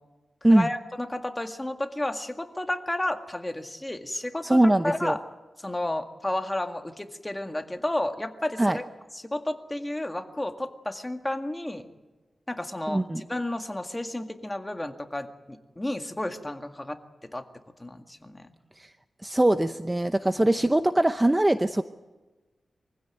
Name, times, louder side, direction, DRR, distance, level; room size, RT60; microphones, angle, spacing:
voice 1, 0.5-5.2 5.6-8.8 9.1-11.9 12.5-17.0 17.2-17.4 17.8-18.5 20.4-20.5, left 1 dB, 15° left, 5 dB, 1.9 m, -32 dB
voice 2, 4.4-5.2 8.6-8.8 12.9-13.2 19.2-21.8, right 1 dB, 15° right, 9 dB, 0.8 m, -22 dB
24.0 x 16.0 x 9.2 m, 1.2 s
wide cardioid pair, 90°, 0 cm